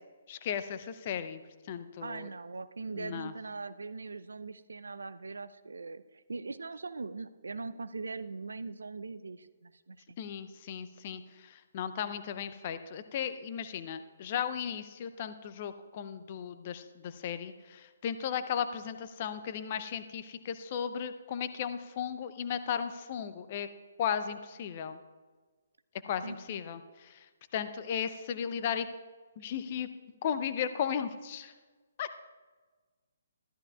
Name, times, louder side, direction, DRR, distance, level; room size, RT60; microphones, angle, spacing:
voice 1, 0.3-1.4 1.7-2.3 3.0-3.3 10.2-23.7 24.0-25.0 26.0-27.3 27.5-28.9 29.4-29.9 30.2-31.5 32.0-32.1, left 8 dB, 40° left, 12 dB, 0.6 m, -35 dB
voice 2, 2.0-10.2 26.2-26.6, right 3 dB, 75° right, 13 dB, 0.4 m, -41 dB
14.0 x 12.0 x 2.4 m, 1.4 s
figure-of-eight pair, 135°, 0 cm